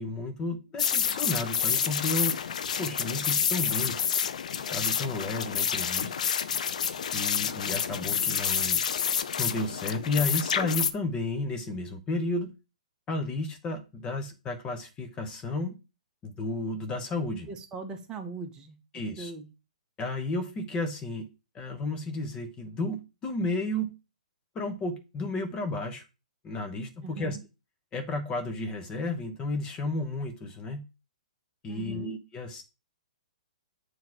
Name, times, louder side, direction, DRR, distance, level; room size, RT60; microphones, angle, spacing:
voice 1, 0.0-2.4 2.8-4.0 4.7-6.1 7.1-8.8 9.4-12.5 13.1-15.8 16.2-17.5 18.9-19.3 20.0-21.3 21.5-23.9 24.5-26.0 26.4-27.4 27.9-30.8 31.6-32.6, left 2 dB, 20° left, 6 dB, 0.9 m, -32 dB
sound 1, 0.8-10.9, left 7 dB, 70° left, 0.7 m, -28 dB
voice 2, 17.5-18.8 19.2-19.5 27.0-27.4 31.7-32.1, right 4 dB, 20° right, 5 dB, 1.1 m, -40 dB
7.5 x 3.0 x 6.0 m, 0.29 s
hypercardioid pair, 140°, 4 cm